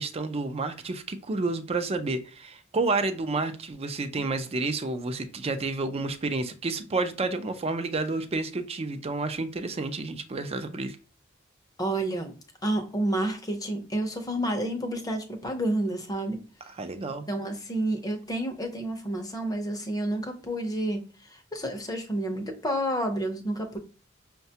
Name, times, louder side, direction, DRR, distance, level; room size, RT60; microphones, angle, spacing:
voice 1, 0.0-11.0 16.7-17.3, right 3 dB, 30° right, 9 dB, 0.4 m, -30 dB
voice 2, 11.8-12.3 12.6-16.4 17.0-21.0 21.5-23.8, right 1 dB, 20° left, 5 dB, 0.6 m, -29 dB
5.6 x 2.2 x 2.8 m, 0.36 s
head